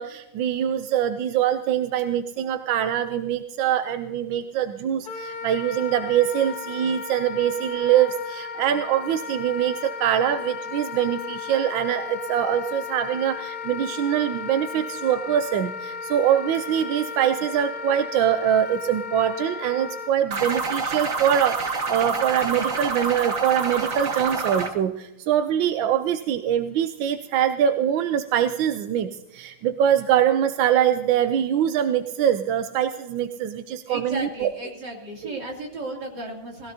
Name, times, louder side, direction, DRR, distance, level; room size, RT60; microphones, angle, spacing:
voice 1, 0.0-34.5, right 10 dB, 90° right, 9 dB, 1.4 m, -23 dB
Wind instrument woodwind instrument, 5.0-20.1, left 6 dB, 65° left, 1.2 m, -35 dB
sound 1, 20.3-24.7, right 4 dB, 50° right, 1.7 m, -27 dB
voice 2, 33.9-36.7, right 2 dB, 65° right, -1 dB, 3.5 m, -34 dB
21.0 x 16.0 x 2.8 m, 0.97 s
omnidirectional pair, 2.0 m